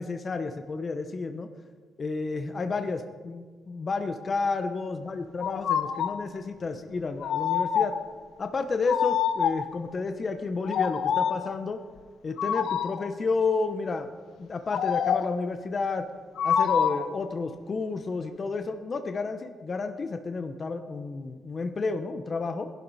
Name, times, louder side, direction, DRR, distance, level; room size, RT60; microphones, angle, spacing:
voice 1, 0.0-1.5 2.0-8.0 8.4-11.8 12.2-14.1 14.4-16.1 16.4-22.7, left 4 dB, 40° left, 7 dB, 1.0 m, -31 dB
sound 1, 5.4-6.2 7.2-8.1 8.9-9.8 10.6-11.5 12.4-13.1 14.7-15.4 16.4-17.2, left 8 dB, 80° left, 0.7 m, -26 dB
20.5 x 12.0 x 4.2 m, 1.5 s
cardioid pair, 120°, 0 cm